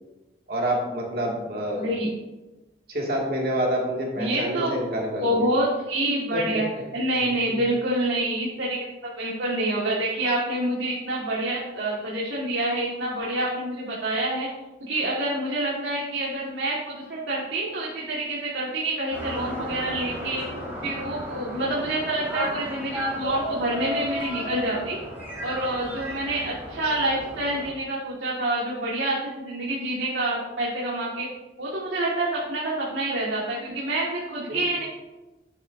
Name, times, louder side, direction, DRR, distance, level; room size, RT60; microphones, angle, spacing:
voice 1, 0.5-1.9 2.9-5.5 6.3-6.4 7.5-7.6 34.5-34.6, equal, 55° right, -2 dB, 2.0 m, -27 dB
voice 2, 1.7-2.1 4.2-4.7 5.2-6.7 6.9-8.9 9.2-14.5 14.8-20.4 20.8-25.0 25.4-31.3 31.6-34.8, right 1 dB, 85° right, -5 dB, 1.6 m, -27 dB
sound 1, 19.1-27.7, equal, 10° right, 2.4 m, -34 dB
11.0 x 7.2 x 2.5 m, 1.1 s
head